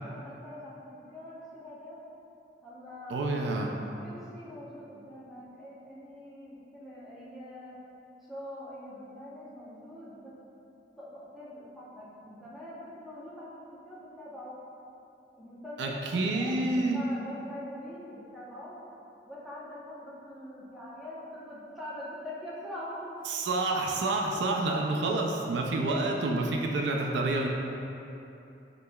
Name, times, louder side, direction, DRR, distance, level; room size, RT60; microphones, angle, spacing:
voice 1, 0.1-2.0 2.6-3.7 4.0-7.8 8.2-10.3 11.0-14.5 15.4-16.7 16.9-18.8 19.2-23.1, left 1 dB, ahead, -9 dB, 0.8 m, -44 dB
voice 2, 3.1-3.7 15.8-17.0 23.3-27.5, right 2 dB, 75° right, 1 dB, 0.4 m, -28 dB
6.0 x 3.2 x 2.2 m, 2.8 s
head